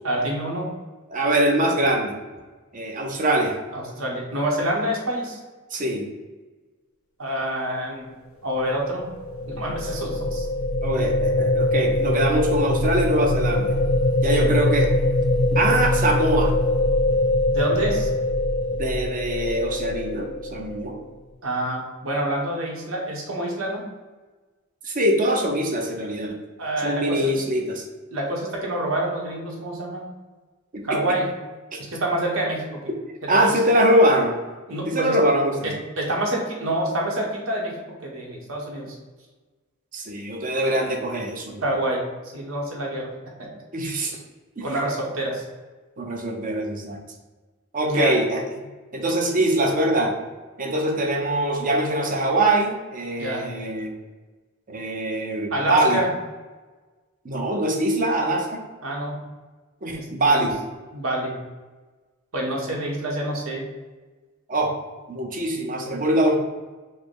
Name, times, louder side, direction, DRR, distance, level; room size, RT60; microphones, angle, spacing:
voice 1, 0.0-0.7 3.7-5.4 7.2-8.1 8.4-9.1 9.4-10.5 14.3-14.6 17.5-18.1 21.4-23.8 26.6-27.2 28.1-30.1 30.8-31.3 31.9-32.7 33.2-33.4 34.7-35.2 35.6-37.8 38.0-39.0 41.6-42.0 42.3-43.1 43.4-43.5 44.6-45.4 47.9-48.2 53.2-53.5 55.5-56.1 58.8-59.2 60.0-60.5 60.9-61.4 62.3-63.7, right 1 dB, 90° right, -1 dB, 1.1 m, -27 dB
voice 2, 1.1-2.2 2.7-3.6 5.7-6.1 10.8-13.8 14.2-14.9 15.6-16.5 18.7-21.0 24.8-26.4 26.8-27.8 30.7-31.0 31.7-31.8 33.3-34.4 34.9-35.7 39.9-41.6 43.7-44.2 44.6-44.7 46.0-47.0 47.7-48.4 48.9-50.1 50.6-53.9 54.7-56.0 57.2-58.6 59.8-60.6 64.5-64.7 65.1-66.4, right 1 dB, 40° right, 2 dB, 0.7 m, -23 dB
sound 1, 8.9-21.0, left 1 dB, 80° left, 0.5 m, -23 dB
4.8 x 2.1 x 4.7 m, 1.3 s
head